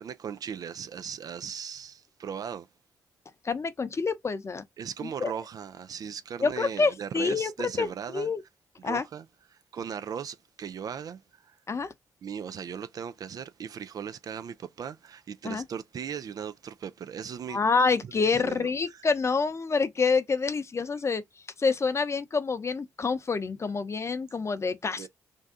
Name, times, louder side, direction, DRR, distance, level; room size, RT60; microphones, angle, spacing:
voice 1, 0.0-2.7 4.8-8.3 8.8-9.3 9.5-11.5 12.2-17.6 18.2-19.0 25.0-25.1, right 7 dB, 55° right, 0.4 m, -38 dB
voice 2, 3.4-4.6 5.0-5.3 6.4-7.5 7.8-8.4 8.8-9.0 11.7-11.9 15.4-15.6 17.5-21.2 21.6-25.1, left 4 dB, 40° left, 0.6 m, -27 dB
2.6 x 2.2 x 3.6 m
hypercardioid pair, 45°, 7 cm